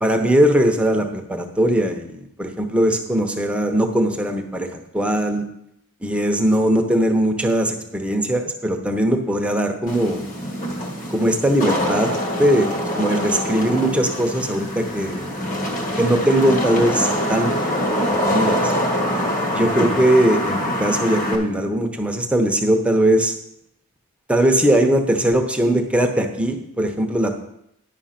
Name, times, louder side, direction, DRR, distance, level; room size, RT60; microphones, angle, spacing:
voice 1, 0.0-5.4 6.0-10.2 11.1-12.1 12.4-12.7 12.9-15.3 16.0-17.5 18.1-18.6 19.5-23.3 24.3-27.3, right 1 dB, 5° right, 3 dB, 0.8 m, -20 dB
Wind / Rain, 9.9-21.4, equal, 40° left, 1.6 m, -24 dB
10.5 x 5.7 x 5.8 m, 0.77 s
head